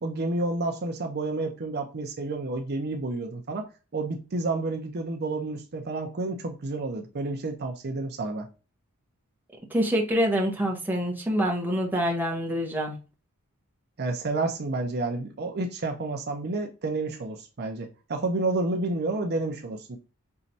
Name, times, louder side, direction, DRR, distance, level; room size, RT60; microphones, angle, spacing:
voice 1, 0.0-3.7 3.9-8.5 14.0-20.0, right 2 dB, 45° right, 0.6 m, -30 dB
voice 2, 9.7-13.0, equal, 10° right, 0.9 m, -26 dB
5.6 x 3.0 x 2.7 m
head